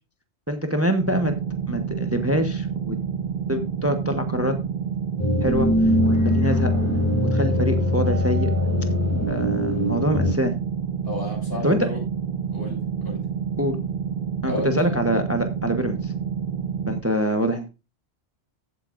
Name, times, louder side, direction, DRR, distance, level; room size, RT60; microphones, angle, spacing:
voice 1, 0.5-1.3 1.7-3.0 3.5-4.6 5.4-5.7 6.2-6.7 7.3-8.5 9.3-10.5 11.6-11.9 13.6-13.8 14.4-16.1 16.9-17.7, equal, 15° right, 7 dB, 1.1 m, -24 dB
sound 1, 1.0-17.0, right 7 dB, 55° right, 1.4 m, -29 dB
sound 2, 5.2-10.3, left 1 dB, 15° left, 3.2 m, -22 dB
voice 2, 11.0-12.0 12.5-13.3 14.4-15.0, left 1 dB, 65° left, -1 dB, 6.7 m, -33 dB
15.0 x 8.2 x 2.6 m, 0.28 s
omnidirectional pair, 1.1 m